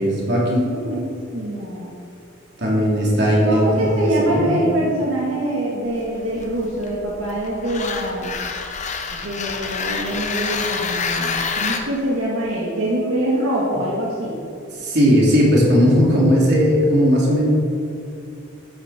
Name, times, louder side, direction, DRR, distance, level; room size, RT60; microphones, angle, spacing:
voice 1, 0.0-0.7 2.6-4.6 14.8-17.5, equal, 55° right, -4 dB, 3.1 m, -17 dB
voice 2, 0.6-1.9 3.4-8.4 9.2-14.4, right 1 dB, 80° right, -4 dB, 1.9 m, -24 dB
sound 1, 5.9-11.8, left 5 dB, 35° left, 0.9 m, -27 dB
13.0 x 9.5 x 4.3 m, 2.4 s
head